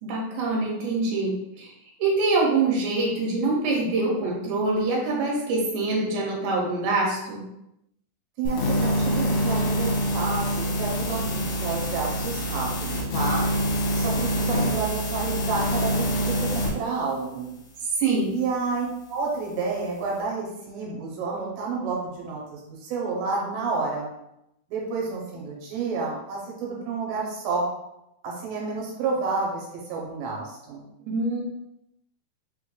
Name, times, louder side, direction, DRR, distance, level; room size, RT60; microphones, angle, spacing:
voice 1, 0.0-1.7 2.0-7.4 18.0-18.3 31.1-31.4, right 3 dB, 70° right, -3 dB, 2.6 m, -25 dB
voice 2, 8.4-13.5 14.0-17.6 18.3-24.1 24.7-27.7 28.2-30.9, right 4 dB, 90° right, -3 dB, 2.6 m, -30 dB
sound 1, 8.5-16.7, equal, 75° left, 2.3 m, -25 dB
5.3 x 2.3 x 3.7 m, 0.86 s
omnidirectional pair, 3.9 m